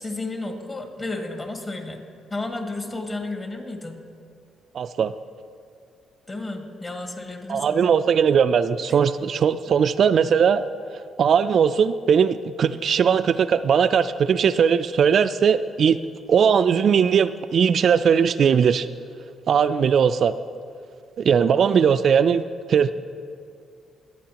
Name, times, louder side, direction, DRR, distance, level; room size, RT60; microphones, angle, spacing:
voice 1, 0.0-2.0 2.3-4.0 6.3-7.8 8.9-9.0, left 2 dB, 30° left, 2 dB, 2.0 m, -32 dB
voice 2, 4.7-5.1 7.5-10.6 11.2-16.0 16.3-18.9 19.5-20.3 21.2-22.9, right 7 dB, 60° right, 11 dB, 0.3 m, -19 dB
22.0 x 9.0 x 2.9 m, 2.3 s
cardioid pair, 90°, 0 cm